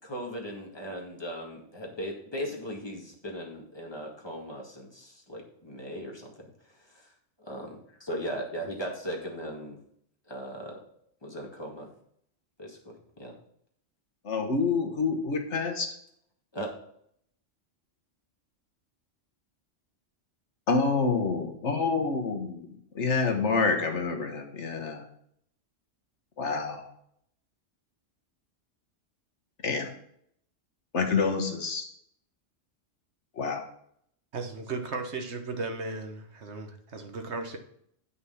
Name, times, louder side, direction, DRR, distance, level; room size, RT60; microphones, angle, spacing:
voice 1, 0.0-6.5 6.8-7.1 7.4-9.8 10.3-10.8 11.2-11.9 12.6-12.9 13.2-13.3 16.5-16.7, equal, 20° left, -1 dB, 2.1 m, -38 dB
voice 2, 14.2-15.9 20.7-25.1 26.4-26.9 29.6-29.9 30.9-31.9 33.4-33.6, left 4 dB, 65° left, 5 dB, 1.6 m, -27 dB
voice 3, 34.3-37.6, right 3 dB, 65° right, 5 dB, 1.4 m, -36 dB
8.6 x 6.0 x 5.7 m, 0.69 s
omnidirectional pair, 1.3 m